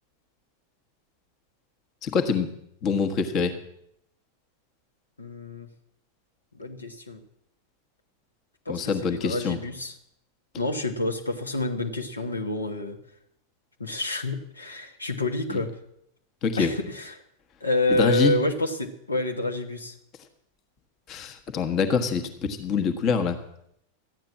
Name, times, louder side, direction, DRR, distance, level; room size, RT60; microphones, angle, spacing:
voice 1, 2.0-2.5 2.8-3.6 8.7-9.6 15.5-15.6 16.4-16.7 17.9-18.4 21.1-23.4, left 5 dB, 35° left, 7 dB, 1.4 m, -25 dB
voice 2, 5.2-5.7 6.5-7.2 8.6-9.9 10.6-13.0 13.8-15.7 16.6-17.2 17.6-20.0, left 2 dB, 80° left, 3 dB, 1.4 m, -28 dB
13.5 x 9.0 x 7.3 m, 0.76 s
figure-of-eight pair, 90°, 0 cm